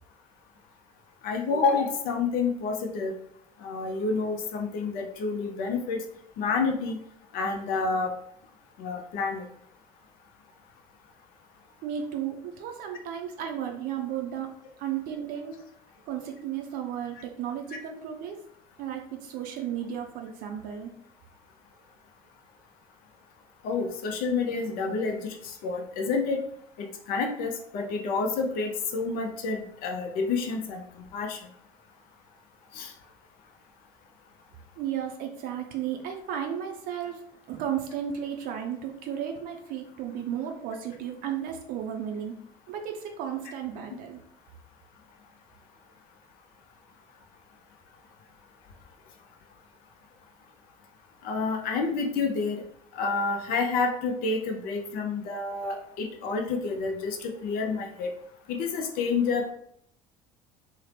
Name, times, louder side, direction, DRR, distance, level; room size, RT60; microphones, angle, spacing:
voice 1, 1.2-3.1 3.6-6.0 6.4-7.0 7.3-8.1 8.8-9.4 23.6-26.4 27.1-30.8 31.1-31.4 32.7-32.9 51.2-52.6 53.0-58.1 58.5-59.5, left 4 dB, 55° left, 3 dB, 0.5 m, -29 dB
voice 2, 11.8-14.5 14.8-15.5 16.1-18.4 18.8-20.9 34.8-37.2 37.5-42.3 42.7-44.2, right 9 dB, 55° right, 3 dB, 0.5 m, -34 dB
2.7 x 2.0 x 3.2 m, 0.69 s
hypercardioid pair, 65°, 18 cm